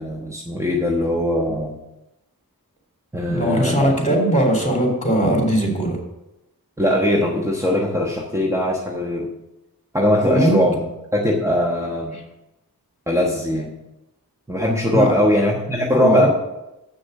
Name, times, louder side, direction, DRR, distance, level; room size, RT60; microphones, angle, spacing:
voice 1, 0.0-1.8 3.1-3.9 6.8-9.3 9.9-12.2 13.1-13.7 14.5-16.3, left 1 dB, 10° right, -2 dB, 1.2 m, -20 dB
voice 2, 3.3-6.0 10.2-10.6 14.9-15.2 15.9-16.3, right 1 dB, 20° left, -1 dB, 3.2 m, -19 dB
7.7 x 6.4 x 6.5 m, 0.93 s
wide cardioid pair, 45°, 38 cm